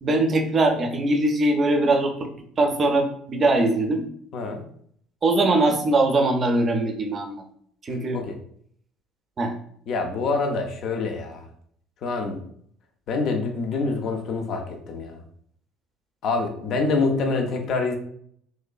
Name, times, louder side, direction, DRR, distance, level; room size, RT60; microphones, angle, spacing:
voice 1, 0.0-2.3 2.6-4.1 5.2-7.4 7.8-8.2 9.4-9.5, right 2 dB, 35° right, 5 dB, 0.5 m, -21 dB
voice 2, 9.9-11.4 12.0-12.4 13.1-15.2 16.2-18.0, left 3 dB, 50° left, 4 dB, 0.5 m, -26 dB
3.2 x 3.0 x 2.2 m, 0.64 s
figure-of-eight pair, 55°, 0 cm